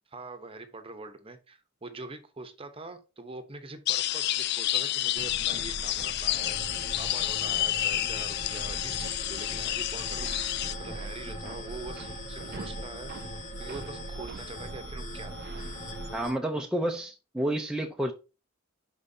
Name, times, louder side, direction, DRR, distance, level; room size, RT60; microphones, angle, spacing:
voice 1, 0.1-6.6 7.0-10.4 10.8-13.1 13.6-15.7 16.2-16.4, right 3 dB, 25° right, 0.9 m, -44 dB
sound 1, 3.9-10.8, left 14 dB, 55° left, 0.3 m, -30 dB
SP hammer, 5.2-16.2, right 4 dB, 50° right, 0.4 m, -42 dB
sound 2, 6.3-16.3, left 2 dB, 40° left, 2.6 m, -42 dB
voice 2, 16.1-18.1, right 1 dB, 5° right, 0.6 m, -30 dB
10.5 x 4.5 x 2.8 m
head